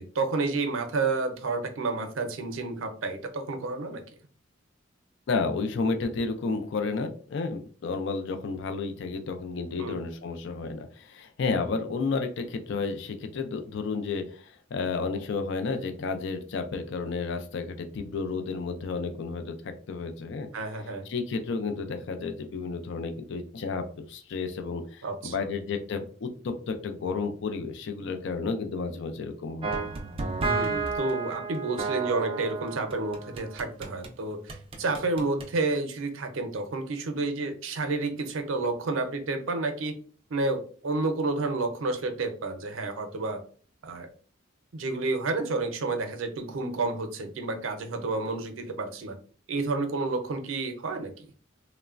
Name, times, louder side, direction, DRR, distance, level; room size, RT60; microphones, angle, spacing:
voice 1, 0.0-4.0 9.8-10.0 20.5-21.0 25.0-25.5 30.4-40.0 40.3-43.4 43.8-44.1 44.7-49.2 49.5-51.3, right 3 dB, 85° right, 7 dB, 0.5 m, -30 dB
voice 2, 5.3-20.5 21.1-29.8, left 4 dB, 65° left, 7 dB, 0.4 m, -32 dB
sound 1, 29.6-34.1 34.5-35.5, right 4 dB, 30° right, 0.3 m, -32 dB
3.0 x 2.1 x 2.4 m, 0.43 s
head